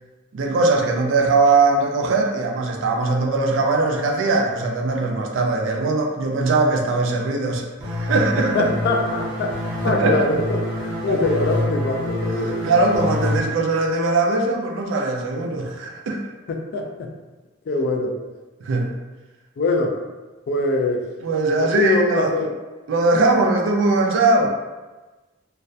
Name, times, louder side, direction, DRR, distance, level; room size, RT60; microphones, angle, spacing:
voice 1, 0.3-8.7 9.9-10.2 11.1-11.2 12.6-16.2 18.6-19.0 21.2-22.5 22.9-24.5, right 3 dB, 65° right, 1 dB, 0.4 m, -20 dB
sound 1, 7.8-13.4, left 1 dB, 25° right, 0.6 m, -26 dB
voice 2, 8.5-12.6 16.5-17.1 17.7-18.2 19.6-20.0 20.5-21.1 21.6-22.5, left 2 dB, 55° left, 3 dB, 0.3 m, -23 dB
2.2 x 2.1 x 2.6 m, 1.2 s
head